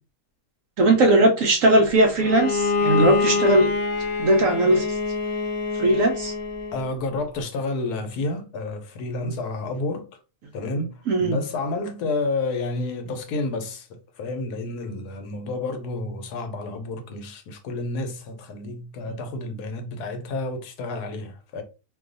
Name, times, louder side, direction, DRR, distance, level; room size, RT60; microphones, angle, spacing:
voice 1, 0.8-3.7 4.2-5.0 5.8-6.3 11.1-11.4, right 1 dB, 70° right, 0.8 m, -19 dB
Bowed string instrument, 2.2-6.9, left 4 dB, 55° left, 0.9 m, -25 dB
voice 2, 6.7-10.1 10.5-21.6, left 2 dB, 75° left, 1.2 m, -30 dB
2.7 x 2.3 x 3.8 m
omnidirectional pair, 1.7 m